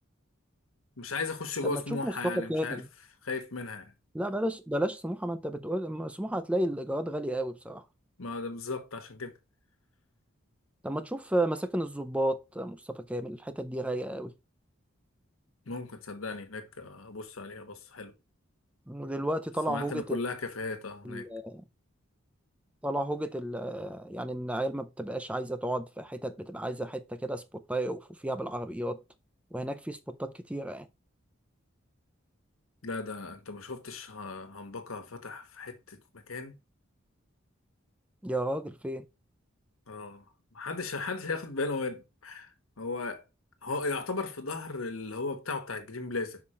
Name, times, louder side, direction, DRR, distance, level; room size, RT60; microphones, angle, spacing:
voice 1, 1.0-2.8 3.2-3.9 8.2-9.3 15.7-18.1 19.7-21.3 32.8-36.5 39.9-40.2 40.5-42.5 42.8-43.2 43.6-46.4, left 3 dB, 90° left, 1.4 m, -36 dB
voice 2, 1.6-2.9 4.1-7.8 10.8-14.3 18.9-20.2 21.0-21.6 22.8-29.0 29.5-30.9 38.2-39.1, right 1 dB, 5° right, 0.4 m, -33 dB
5.6 x 5.1 x 4.2 m
head